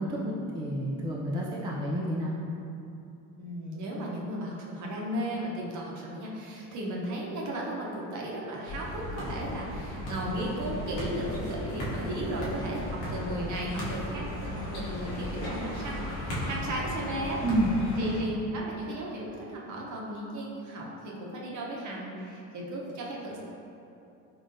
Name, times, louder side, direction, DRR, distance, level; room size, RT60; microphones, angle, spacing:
voice 1, 0.0-2.4 17.4-17.8, right 1 dB, 10° right, -4 dB, 0.4 m, -29 dB
voice 2, 3.4-17.4 18.0-23.4, right 1 dB, 50° right, -3 dB, 0.8 m, -35 dB
sound 1, 8.7-18.2, left 1 dB, 80° left, 1.1 m, -36 dB
3.8 x 3.2 x 2.6 m, 2.7 s
supercardioid pair, 80°, 38 cm